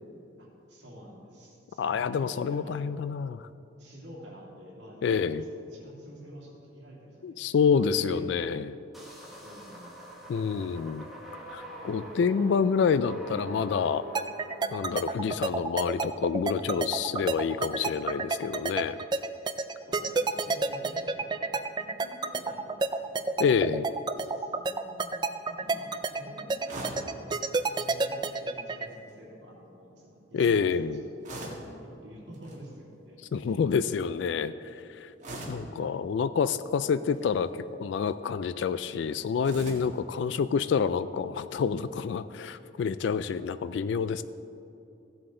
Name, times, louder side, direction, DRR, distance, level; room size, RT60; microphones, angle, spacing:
voice 1, 0.4-2.7 3.8-7.9 8.1-8.7 9.4-10.3 12.0-12.1 19.3-21.5 21.8-23.4 24.2-27.2 27.6-31.2 31.9-33.6, equal, 65° right, -4 dB, 2.7 m, -49 dB
voice 2, 1.8-3.4 5.0-5.4 7.2-8.7 10.3-11.1 11.5-14.0 14.7-19.0 23.4-23.9 30.3-31.0 33.3-34.5 35.0-35.1 35.5-44.2, left 6 dB, 65° left, 14 dB, 0.3 m, -27 dB
sound 1, 8.9-14.6, right 1 dB, ahead, 1.4 m, -44 dB
sound 2, 14.2-28.9, right 3 dB, 25° right, 0.3 m, -29 dB
sound 3, 26.7-27.1 28.8-29.2 31.2-31.7 32.3-32.6 35.2-35.7 37.0-37.4 39.4-40.0, right 1 dB, 40° right, 1.8 m, -40 dB
15.0 x 7.8 x 3.8 m, 2.8 s
head